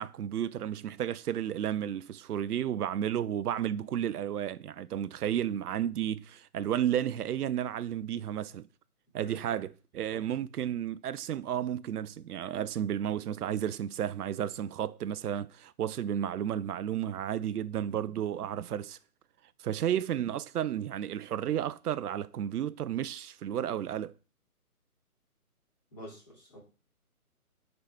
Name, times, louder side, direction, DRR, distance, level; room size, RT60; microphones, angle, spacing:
voice 1, 0.0-8.6 9.1-19.0 19.6-24.1, right 10 dB, 85° right, 0.5 m, -32 dB
voice 2, 9.2-9.6 10.1-10.2 25.9-26.6, equal, 25° left, 2.6 m, -47 dB
10.0 x 3.9 x 3.4 m
hypercardioid pair, 175°, 45 cm